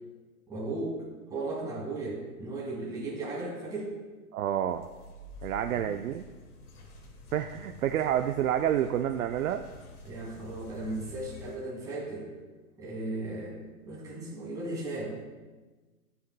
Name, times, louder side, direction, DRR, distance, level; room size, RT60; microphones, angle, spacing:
voice 1, 0.5-1.0 1.3-3.9 5.8-5.9 10.1-12.3 12.8-13.5 13.8-15.3, right 2 dB, 10° right, -5 dB, 2.0 m, -36 dB
voice 2, 4.3-4.9 5.4-6.2 7.3-9.6, right 10 dB, 65° right, 7 dB, 0.6 m, -29 dB
sound 1, 4.7-11.6, left 2 dB, 75° left, 2.0 m, -49 dB
20.5 x 7.0 x 2.2 m, 1.3 s
hypercardioid pair, 155°, 46 cm